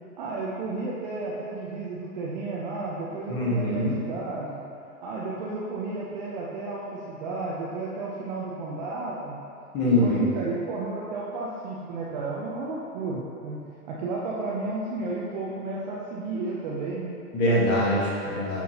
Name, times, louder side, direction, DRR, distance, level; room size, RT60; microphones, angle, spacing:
voice 1, 0.2-4.6 5.0-9.4 9.8-17.2, right 3 dB, 30° right, -5 dB, 0.6 m, -32 dB
voice 2, 3.3-3.9 9.7-10.2 17.3-18.6, left 1 dB, 20° left, -5 dB, 1.5 m, -23 dB
9.4 x 6.0 x 2.9 m, 2.6 s
hypercardioid pair, 145°, 47 cm